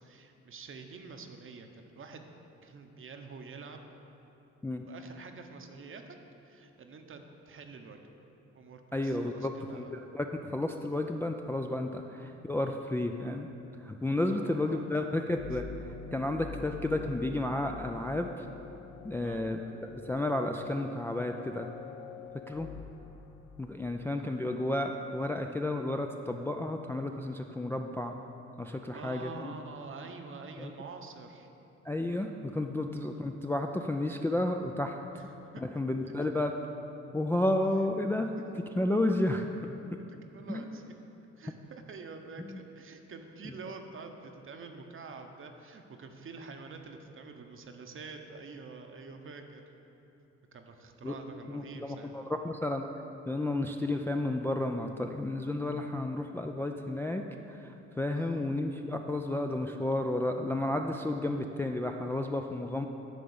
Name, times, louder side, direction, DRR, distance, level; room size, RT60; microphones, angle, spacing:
voice 1, 0.0-2.3 2.6-3.8 4.8-6.0 6.4-8.0 8.5-10.1 14.2-15.0 19.2-19.4 28.7-31.5 35.4-35.8 36.0-36.1 39.0-39.1 40.3-40.9 41.4-49.7 50.5-52.3 58.1-58.6, right 4 dB, 45° right, 5 dB, 0.8 m, -47 dB
voice 2, 8.9-10.3 10.5-13.5 13.8-15.6 16.1-18.4 19.0-21.7 22.5-22.7 23.6-28.2 28.6-29.5 30.6-30.7 31.9-35.0 35.6-36.5 37.1-38.3 38.8-39.4 40.5-40.7 42.5-42.6 51.0-51.2 51.5-52.9 53.3-62.9, left 1 dB, 10° left, 4 dB, 0.3 m, -32 dB
sound 1, 15.3-24.0, left 6 dB, 80° left, 0.6 m, -46 dB
10.5 x 3.7 x 7.0 m, 2.9 s
cardioid pair, 90°, 30 cm